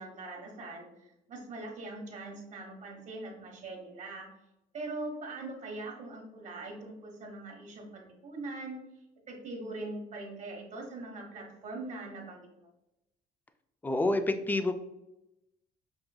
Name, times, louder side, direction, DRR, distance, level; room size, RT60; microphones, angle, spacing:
voice 1, 0.0-4.3 4.7-8.8 9.3-12.5, right 2 dB, 45° right, 1 dB, 1.1 m, -42 dB
voice 2, 13.8-14.7, left 2 dB, 10° left, 8 dB, 0.3 m, -28 dB
5.4 x 2.5 x 2.3 m, 0.91 s
cardioid pair, 110°, 17 cm